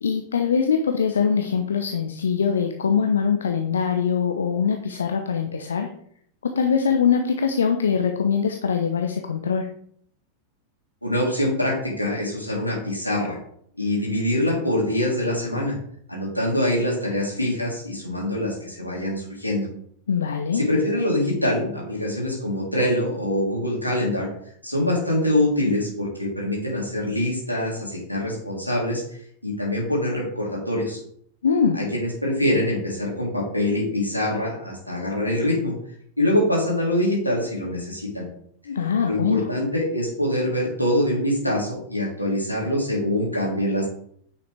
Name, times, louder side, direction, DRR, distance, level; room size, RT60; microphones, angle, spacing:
voice 1, 0.0-5.9 6.6-9.7 20.1-20.6 31.4-31.8 38.7-39.5, left 6 dB, 70° left, 5 dB, 0.9 m, -22 dB
voice 2, 11.0-13.4 13.8-15.7 16.1-19.7 20.5-24.3 24.6-29.0 29.4-31.0 31.7-35.7 36.2-38.3 39.0-43.9, left 1 dB, 90° left, -4 dB, 3.5 m, -24 dB
9.5 x 6.9 x 3.5 m, 0.65 s
figure-of-eight pair, 90°, 0 cm